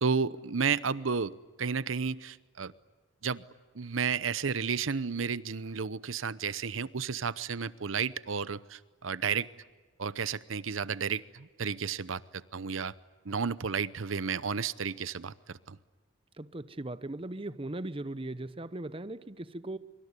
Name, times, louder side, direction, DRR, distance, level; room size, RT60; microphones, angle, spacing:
voice 1, 0.0-2.7 3.2-3.4 3.7-9.5 10.0-12.9 13.3-15.8, right 6 dB, 90° right, 0.8 m, -32 dB
voice 2, 16.4-19.8, right 2 dB, 30° right, 0.8 m, -38 dB
24.5 x 24.5 x 9.7 m
head